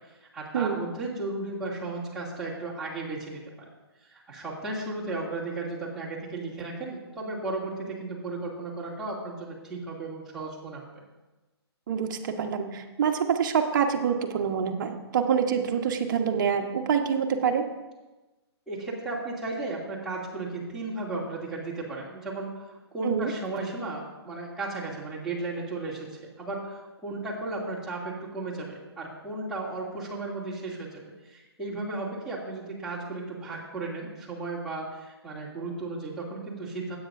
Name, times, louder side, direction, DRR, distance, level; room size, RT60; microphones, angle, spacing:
voice 1, 0.1-3.4 4.0-11.0 18.7-37.0, right 2 dB, 5° right, -8 dB, 2.6 m, -35 dB
voice 2, 11.9-17.6 23.0-23.3, right 7 dB, 45° right, 4 dB, 1.2 m, -26 dB
16.5 x 8.8 x 2.6 m, 1.1 s
figure-of-eight pair, 135°, 14 cm